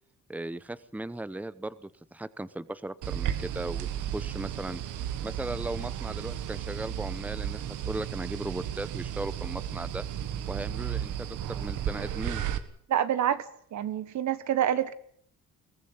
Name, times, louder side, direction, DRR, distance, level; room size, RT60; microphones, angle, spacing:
voice 1, 0.3-10.0 10.5-12.5, right 2 dB, 5° right, 15 dB, 0.9 m, -37 dB
sound 1, 3.0-12.6, right 10 dB, 85° right, 1.6 m, -34 dB
voice 2, 12.9-13.4 13.7-14.9, right 10 dB, 70° right, 13 dB, 1.5 m, -27 dB
22.5 x 15.5 x 8.8 m, 0.64 s
cardioid pair, 90°, 30 cm